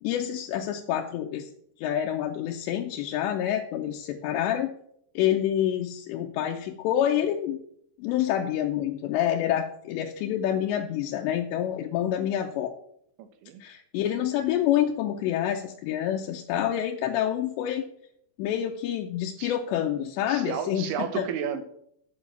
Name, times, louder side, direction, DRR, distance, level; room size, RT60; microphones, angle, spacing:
voice 1, 0.0-1.5 1.8-4.7 5.2-7.6 8.0-12.7 13.6-17.8 18.4-21.3, left 11 dB, 85° left, 2 dB, 2.9 m, -27 dB
voice 2, 13.2-13.6 19.4-19.5 20.3-21.6, right 8 dB, 90° right, 10 dB, 3.4 m, -32 dB
13.0 x 5.4 x 7.1 m, 0.70 s
omnidirectional pair, 5.1 m